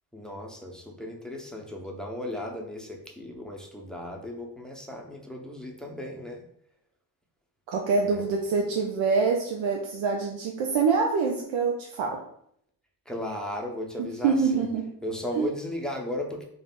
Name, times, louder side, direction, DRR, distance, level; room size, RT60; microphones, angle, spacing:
voice 1, 0.1-6.5 8.0-8.2 13.1-14.7 15.0-16.4, left 1 dB, ahead, 0 dB, 0.6 m, -36 dB
voice 2, 7.7-12.2 14.2-14.9 15.4-15.5, right 5 dB, 70° right, 0 dB, 0.6 m, -25 dB
2.5 x 2.0 x 3.5 m, 0.69 s
supercardioid pair, 55°, 48 cm